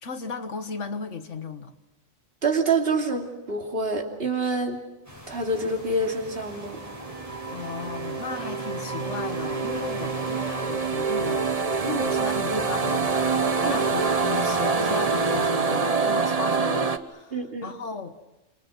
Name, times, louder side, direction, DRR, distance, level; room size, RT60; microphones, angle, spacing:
voice 1, 0.0-1.7 7.5-11.5 11.8-18.2, left 5 dB, 70° left, 9 dB, 1.9 m, -35 dB
voice 2, 2.4-4.8 5.3-6.8 13.6-13.8 17.3-17.7, right 3 dB, 50° right, 2 dB, 2.9 m, -26 dB
sound 1, 5.0-15.5, left 1 dB, 10° right, 6.9 m, -42 dB
sound 2, 6.3-17.0, right 4 dB, 30° right, 1.1 m, -26 dB
28.5 x 26.5 x 6.2 m, 0.99 s
omnidirectional pair, 1.3 m